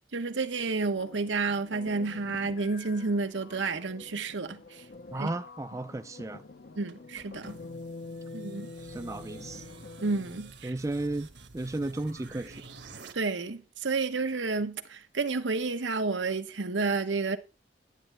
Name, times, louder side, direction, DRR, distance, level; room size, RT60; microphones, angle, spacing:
voice 1, 0.1-4.8 5.2-5.3 6.8-7.6 8.3-8.7 10.0-10.7 13.1-17.4, right 3 dB, 90° right, 1.0 m, -30 dB
sound 1, 1.0-10.5, left 3 dB, 55° left, 0.7 m, -46 dB
voice 2, 5.1-6.4 8.9-9.6 10.6-11.3 11.5-12.5, right 2 dB, 15° right, 0.4 m, -34 dB
sound 2, 6.9-13.1, right 3 dB, 70° right, 1.3 m, -49 dB
10.5 x 10.0 x 3.4 m
head